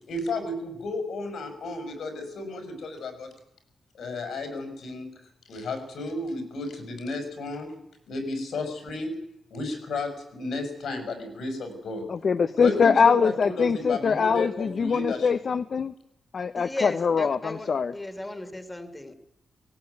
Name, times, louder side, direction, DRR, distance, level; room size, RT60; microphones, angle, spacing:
voice 1, 0.1-3.3 4.0-5.1 5.5-7.7 8.1-9.1 9.5-12.1 12.6-15.3, left 2 dB, 85° left, 6 dB, 5.8 m, -32 dB
voice 2, 12.1-15.9 16.3-17.9, left 5 dB, 55° left, 11 dB, 0.8 m, -23 dB
voice 3, 16.5-19.1, left 1 dB, 15° left, 9 dB, 2.0 m, -36 dB
18.0 x 18.0 x 9.5 m, 0.82 s
wide cardioid pair, 110°, 0 cm